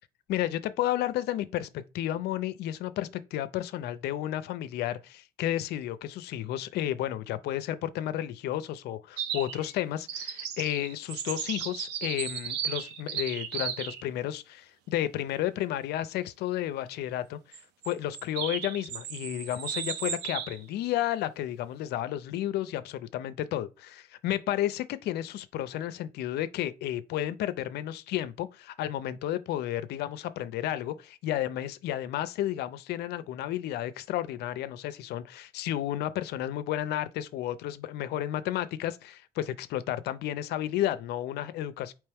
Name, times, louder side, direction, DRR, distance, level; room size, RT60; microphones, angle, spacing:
voice 1, 0.3-1.7 1.9-17.6 17.9-41.9, left 12 dB, 75° left, 0.5 m, -32 dB
sound 1, 9.2-9.7 10.1-14.0 17.5-20.6, right 8 dB, 90° right, 0.7 m, -35 dB
4.4 x 3.0 x 3.4 m
cardioid pair, 110°, 17 cm